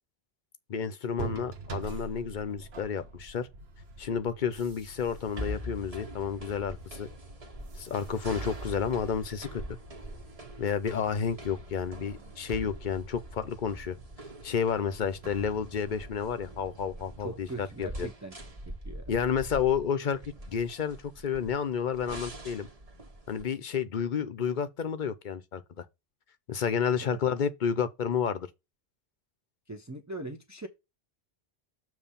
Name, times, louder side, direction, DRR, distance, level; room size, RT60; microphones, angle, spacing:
voice 1, 0.7-3.5 4.0-7.1 7.8-9.6 10.6-13.9 14.4-18.1 19.1-22.7 23.3-25.8 26.5-28.5, left 7 dB, 55° left, 0.8 m, -31 dB
sound 1, 1.2-16.9, right 3 dB, 80° right, 1.2 m, -46 dB
sound 2, 5.0-23.4, right 1 dB, 35° right, 1.3 m, -44 dB
voice 2, 17.2-18.4 18.7-19.1 27.0-27.2 29.7-30.7, right 2 dB, 20° right, 0.8 m, -41 dB
7.0 x 3.2 x 5.6 m
omnidirectional pair, 1.0 m